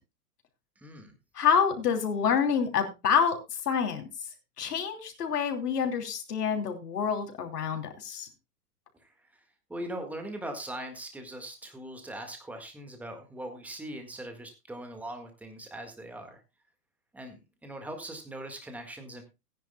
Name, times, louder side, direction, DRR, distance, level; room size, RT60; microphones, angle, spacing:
voice 1, 0.8-1.1 9.0-9.1 9.7-16.4 17.1-19.2, right 1 dB, 5° right, 5 dB, 1.7 m, -40 dB
voice 2, 1.3-3.4 3.6-4.1 4.6-8.3, left 7 dB, 85° left, 5 dB, 3.1 m, -27 dB
18.0 x 10.0 x 2.2 m, 0.25 s
hypercardioid pair, 145°, 46 cm